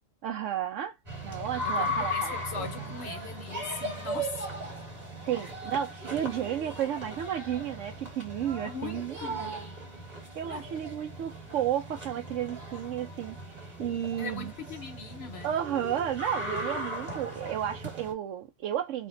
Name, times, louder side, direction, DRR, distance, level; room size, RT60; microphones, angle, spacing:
voice 1, 0.2-1.0 1.2-2.7 5.2-9.7 10.4-14.5 15.4-19.1, right 10 dB, 75° right, 0.9 m, -32 dB
sound 1, 1.1-18.1, equal, 35° right, 1.4 m, -37 dB
voice 2, 1.6-4.5 8.6-9.5 10.5-10.7 14.2-15.5, left 5 dB, 60° left, 0.8 m, -40 dB
3.5 x 2.1 x 3.8 m
omnidirectional pair, 1.3 m